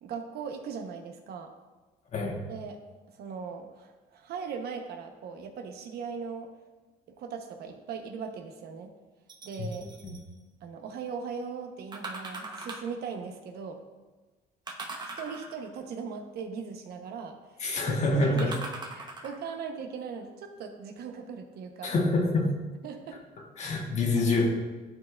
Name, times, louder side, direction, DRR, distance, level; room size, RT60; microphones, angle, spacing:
voice 1, 0.0-1.5 2.5-2.8 3.1-6.5 7.1-8.9 9.4-9.9 10.6-13.8 15.2-17.4 17.8-18.5 18.9-21.9 22.8-23.2, right 6 dB, 70° right, 4 dB, 0.8 m, -39 dB
sound 1, 9.3-10.2 11.9-13.0 14.7-15.8 18.4-19.5 20.2-20.3, right 2 dB, 25° right, 0.9 m, -40 dB
voice 2, 17.6-18.6 21.8-22.5 23.6-24.5, left 2 dB, 45° left, 1 dB, 1.2 m, -26 dB
11.0 x 4.4 x 2.4 m, 1.2 s
cardioid pair, 110°, 17 cm